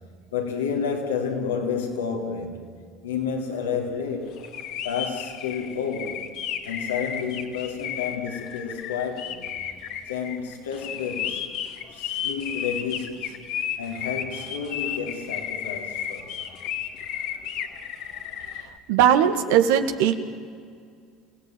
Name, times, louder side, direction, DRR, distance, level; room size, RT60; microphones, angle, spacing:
voice 1, 0.3-2.7 3.0-6.3 6.6-9.8 10.1-13.4 13.8-16.4, left 6 dB, 90° left, 2 dB, 3.8 m, -30 dB
sound 1, 4.4-18.6, left 9 dB, 65° left, 2.5 m, -33 dB
voice 2, 18.9-20.2, right 9 dB, 75° right, 8 dB, 1.9 m, -19 dB
28.5 x 17.5 x 9.3 m, 2.2 s
hypercardioid pair, 75°, 0 cm